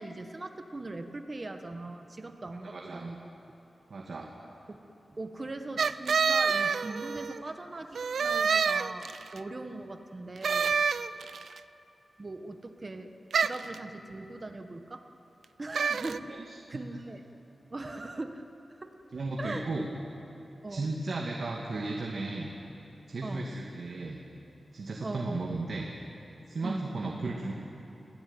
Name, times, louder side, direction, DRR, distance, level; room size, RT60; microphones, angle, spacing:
voice 1, 0.0-3.2 4.7-4.8 5.1-10.8 12.2-15.0 15.6-16.4 16.7-17.2 17.7-18.4 18.8-18.9 19.4-19.7 20.6-21.0 23.2-23.5 25.0-25.6 26.6-27.0, right 2 dB, 30° right, 6 dB, 1.4 m, -40 dB
voice 2, 2.6-3.1 3.9-4.3 16.3-16.8 19.1-19.9 20.7-22.5 23.1-24.2 24.7-25.9 26.5-27.5, right 2 dB, 55° right, -1 dB, 2.5 m, -35 dB
sound 1, 5.8-7.4 8.0-9.4 10.4-11.5 13.3-13.7 15.7-16.2, right 6 dB, 90° right, 0.6 m, -27 dB
28.5 x 17.5 x 9.3 m, 2.9 s
wide cardioid pair, 150°, 0 cm